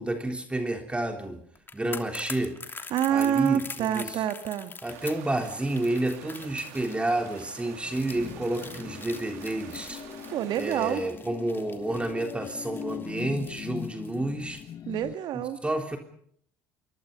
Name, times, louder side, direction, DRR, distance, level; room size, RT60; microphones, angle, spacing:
voice 1, 0.0-1.4 1.7-2.6 3.1-4.2 4.8-10.0 10.6-14.6 15.6-16.0, right 1 dB, 15° right, 5 dB, 3.6 m, -30 dB
sound 1, 1.5-14.7 15.0-15.2, left 4 dB, 25° left, 3.0 m, -44 dB
voice 2, 2.9-4.7 10.3-11.0 14.9-15.6, right 10 dB, 60° right, 10 dB, 2.1 m, -27 dB
sound 2, 4.9-11.0, right 11 dB, 75° right, 3.1 m, -47 dB
sound 3, 7.8-15.1, left 10 dB, 45° left, 1.3 m, -41 dB
28.0 x 22.5 x 5.4 m, 0.63 s
hypercardioid pair, 70°, 9 cm